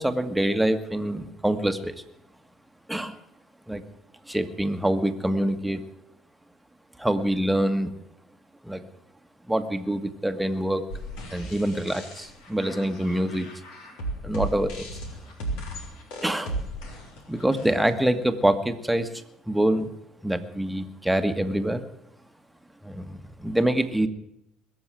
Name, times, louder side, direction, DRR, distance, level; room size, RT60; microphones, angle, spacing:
voice 1, 0.0-2.0 2.9-3.1 3.7-3.8 4.3-5.8 7.0-7.9 8.6-8.8 9.5-10.9 11.3-13.5 14.2-14.9 16.2-16.5 17.3-19.9 20.2-21.8 22.8-24.1, right 1 dB, 5° right, 8 dB, 1.6 m, -25 dB
sound 1, 10.9-17.9, right 1 dB, 65° left, 3.5 m, -36 dB
21.0 x 7.2 x 9.1 m, 0.84 s
hypercardioid pair, 60°, 0 cm